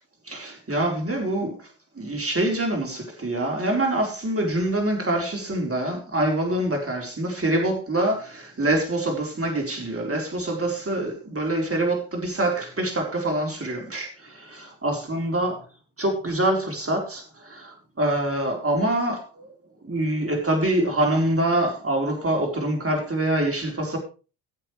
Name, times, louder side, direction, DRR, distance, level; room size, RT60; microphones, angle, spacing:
voice 1, 0.3-1.6 2.0-14.1 14.5-15.6 16.0-17.2 17.5-17.7 18.0-19.5 19.8-24.0, right 1 dB, 30° right, 4.2 m, -25 dB
17.0 x 7.6 x 3.3 m
hypercardioid pair, 45°, 49 cm